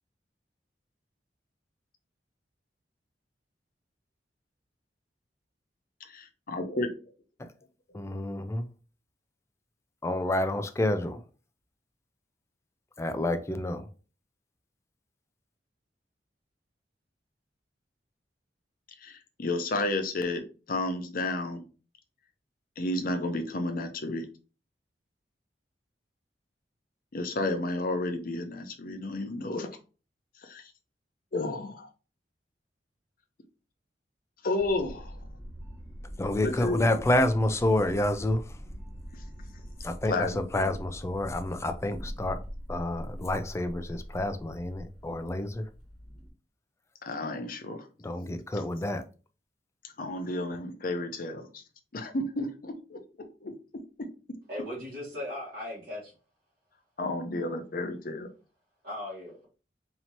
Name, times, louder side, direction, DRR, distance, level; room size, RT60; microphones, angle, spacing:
voice 1, 6.1-6.9 19.0-21.6 22.8-24.3 27.1-29.7 30.4-30.7 31.3-31.9 34.4-35.1 36.4-36.8 40.1-40.7 47.0-47.9 49.8-51.6 51.9-54.1 57.0-58.3, left 2 dB, 55° left, 0.7 m, -32 dB
voice 2, 7.9-8.7 10.0-11.2 13.0-13.9 36.2-38.6 39.8-42.4 42.7-45.7 48.0-49.0, left 1 dB, 15° left, 0.4 m, -29 dB
sound 1, 34.6-46.3, equal, 5° right, 1.3 m, -43 dB
voice 3, 54.5-56.1 58.8-59.5, left 1 dB, 65° right, 2.1 m, -38 dB
4.3 x 2.8 x 2.9 m
head